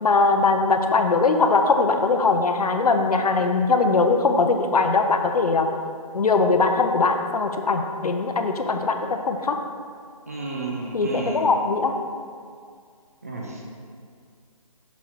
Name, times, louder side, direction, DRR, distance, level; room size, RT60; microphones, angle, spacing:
voice 1, 0.0-5.7 6.1-9.6 10.9-11.9, left 3 dB, 80° left, 6 dB, 0.7 m, -21 dB
voice 2, 10.3-11.5 13.2-13.6, right 2 dB, 25° right, -1 dB, 0.4 m, -31 dB
6.1 x 3.9 x 4.4 m, 2.1 s
hypercardioid pair, 175°, 19 cm